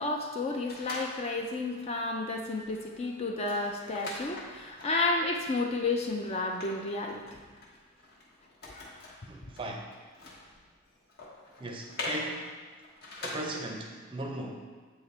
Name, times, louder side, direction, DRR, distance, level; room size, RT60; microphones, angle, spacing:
voice 1, 0.0-7.2 8.7-8.8, left 2 dB, 30° left, 1 dB, 0.4 m, -31 dB
sound 1, 0.6-1.6 2.0-2.2 2.5-13.8, left 2 dB, 45° left, 1.1 m, -44 dB
voice 2, 9.3-9.9 11.6-12.5 13.2-14.7, right 1 dB, 25° right, 1 dB, 0.6 m, -38 dB
8.3 x 2.9 x 4.2 m, 1.5 s
head